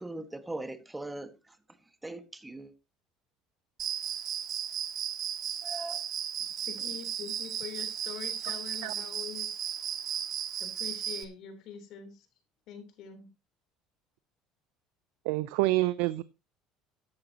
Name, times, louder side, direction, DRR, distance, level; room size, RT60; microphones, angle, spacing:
voice 1, 0.0-1.6 2.0-2.7 5.6-6.1, right 2 dB, 10° right, 1.6 m, -40 dB
Cricket, 3.8-11.2, right 9 dB, 50° right, 1.8 m, -35 dB
voice 2, 6.6-9.7 10.6-12.3 12.7-13.3, left 7 dB, 65° left, 3.7 m, -44 dB
voice 3, 15.2-16.2, right 18 dB, 80° right, 0.5 m, -27 dB
14.0 x 10.5 x 3.0 m
supercardioid pair, 90°, 0 cm